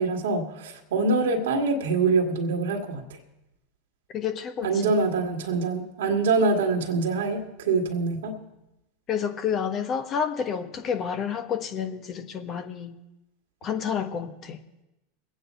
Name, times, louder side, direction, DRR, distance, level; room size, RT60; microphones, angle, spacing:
voice 1, 0.0-3.0 4.6-8.4, right 3 dB, 80° right, 3 dB, 1.9 m, -25 dB
voice 2, 4.1-4.9 9.1-12.9 13.6-14.6, left 7 dB, 40° left, 7 dB, 1.4 m, -29 dB
22.5 x 9.0 x 4.4 m, 0.92 s
hypercardioid pair, 105°, 0 cm